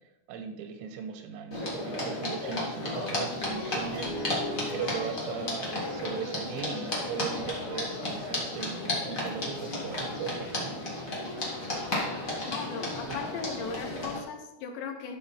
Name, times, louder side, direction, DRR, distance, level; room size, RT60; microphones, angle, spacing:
voice 1, 0.3-4.4 4.7-10.7 13.1-13.2, right 6 dB, 90° right, 6 dB, 3.3 m, -38 dB
sound 1, 1.5-14.2, left 1 dB, 50° left, 0.9 m, -33 dB
voice 2, 12.5-15.2, left 5 dB, 80° left, 5 dB, 3.2 m, -37 dB
12.5 x 5.2 x 4.3 m, 0.93 s
omnidirectional pair, 5.1 m